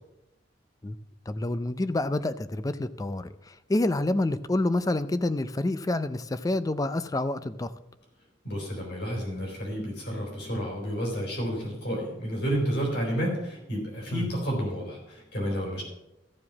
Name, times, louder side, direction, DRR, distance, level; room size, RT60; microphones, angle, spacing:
voice 1, 1.3-3.3 3.7-7.7 14.1-14.2, left 2 dB, 20° left, 14 dB, 0.4 m, -28 dB
voice 2, 8.4-15.8, equal, 65° left, -1 dB, 4.0 m, -31 dB
14.0 x 4.9 x 7.1 m, 0.91 s
head